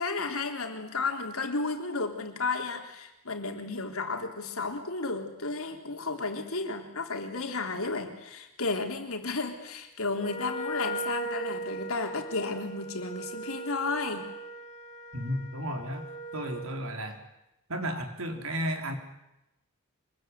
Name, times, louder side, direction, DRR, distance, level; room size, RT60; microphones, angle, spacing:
voice 1, 0.0-14.3, left 3 dB, 70° left, 4 dB, 3.7 m, -33 dB
Wind instrument woodwind instrument, 10.2-16.8, right 2 dB, 35° left, 4.0 m, -38 dB
voice 2, 15.1-17.2 17.7-19.0, equal, 65° right, 5 dB, 3.7 m, -33 dB
25.5 x 22.0 x 9.5 m, 0.90 s
head